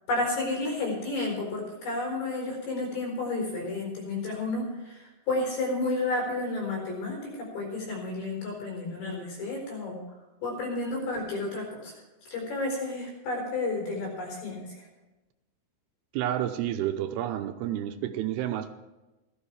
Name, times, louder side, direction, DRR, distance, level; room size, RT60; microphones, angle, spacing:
voice 1, 0.1-10.0 10.4-11.9 12.2-14.9, left 2 dB, 70° left, -1 dB, 6.6 m, -31 dB
voice 2, 16.1-18.7, right 12 dB, 80° right, 8 dB, 2.6 m, -30 dB
16.0 x 12.5 x 4.8 m, 1.1 s
omnidirectional pair, 4.8 m